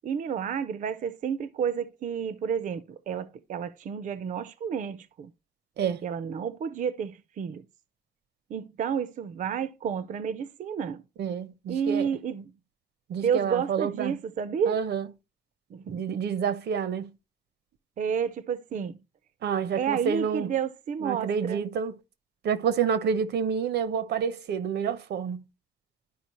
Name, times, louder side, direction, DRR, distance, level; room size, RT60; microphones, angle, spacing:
voice 1, 0.0-5.3 6.0-7.7 8.5-11.0 11.7-12.5 13.2-14.8 15.7-16.2 18.0-19.0 19.8-21.7, right 7 dB, 50° right, 0.5 m, -30 dB
voice 2, 11.2-12.1 13.1-14.2 14.7-15.1 15.9-17.1 19.4-20.5 21.0-21.9 22.4-25.4, right 7 dB, 85° right, 0.8 m, -28 dB
11.5 x 4.9 x 3.0 m
wide cardioid pair, 175°, 17 cm